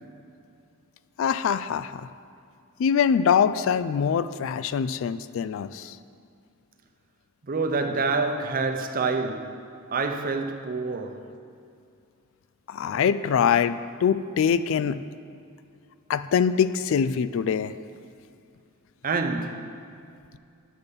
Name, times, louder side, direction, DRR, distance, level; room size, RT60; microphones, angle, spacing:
voice 1, 1.2-2.1 2.8-6.0 12.7-15.0 16.1-17.7, left 7 dB, 65° left, 0.3 m, -24 dB
voice 2, 7.5-11.3 19.0-19.8, right 4 dB, 40° right, 0.6 m, -27 dB
9.9 x 6.9 x 5.3 m
head